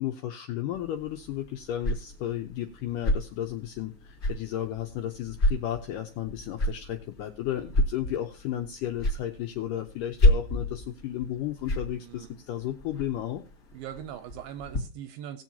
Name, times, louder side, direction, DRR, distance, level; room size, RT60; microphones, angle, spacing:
voice 1, 0.0-13.4, left 12 dB, 85° left, 1.9 m, -33 dB
sound 1, 0.7-14.8, left 1 dB, 30° left, 2.0 m, -31 dB
voice 2, 13.7-15.4, right 10 dB, 80° right, 2.2 m, -40 dB
19.0 x 7.5 x 2.8 m
omnidirectional pair, 4.6 m